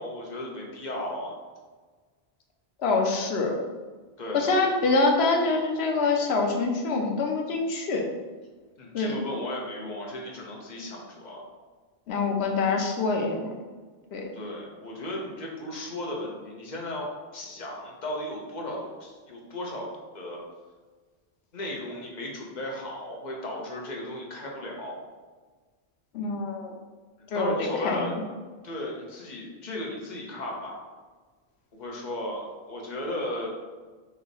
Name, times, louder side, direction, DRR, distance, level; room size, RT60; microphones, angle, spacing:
voice 1, 0.0-1.3 4.2-4.6 8.8-11.4 14.3-17.1 17.3-19.9 20.1-20.4 21.5-25.0 27.3-28.1 28.6-30.8 31.8-33.5, left 1 dB, 50° left, -1 dB, 0.8 m, -35 dB
voice 2, 2.8-3.6 4.3-8.1 8.9-9.2 12.1-13.5 14.1-14.3 26.1-26.7 27.3-28.2, left 3 dB, 85° left, 2 dB, 0.9 m, -25 dB
3.2 x 2.8 x 4.0 m, 1.4 s
omnidirectional pair, 1.1 m